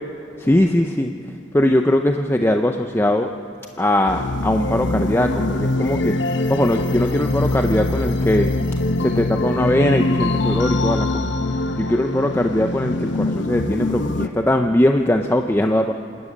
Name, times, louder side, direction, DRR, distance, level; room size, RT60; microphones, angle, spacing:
voice 1, 0.4-1.3 1.5-3.3 3.8-6.2 6.5-8.5 9.0-11.3 11.8-15.9, left 1 dB, 10° left, 5 dB, 0.5 m, -20 dB
sound 1, 4.1-14.3, left 2 dB, 70° left, 0.9 m, -23 dB
26.5 x 12.5 x 8.7 m, 2.9 s
head